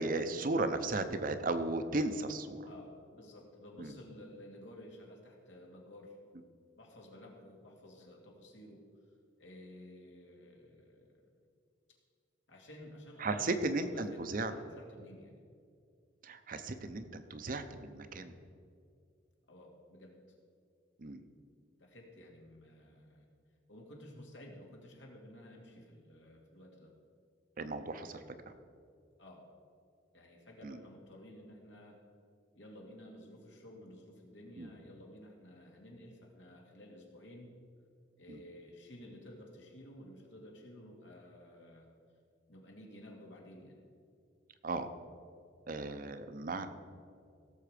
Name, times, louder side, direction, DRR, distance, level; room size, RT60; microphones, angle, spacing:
voice 1, 0.0-2.6 3.8-3.9 13.2-14.5 16.2-18.4 21.0-21.2 27.6-28.2 30.6-30.8 34.6-34.7 38.3-38.4 44.6-44.9 45.7-46.7, right 2 dB, 50° right, 9 dB, 0.7 m, -35 dB
voice 2, 2.6-6.2 6.8-8.8 9.4-11.1 12.5-13.4 13.7-13.9 14.3-15.4 19.5-20.2 21.8-23.3 23.7-26.9 29.2-29.4 30.1-32.0 32.5-37.5 38.2-41.9 42.5-43.8, left 1 dB, 85° left, -1 dB, 2.3 m, -53 dB
16.5 x 7.1 x 5.0 m, 2.3 s
head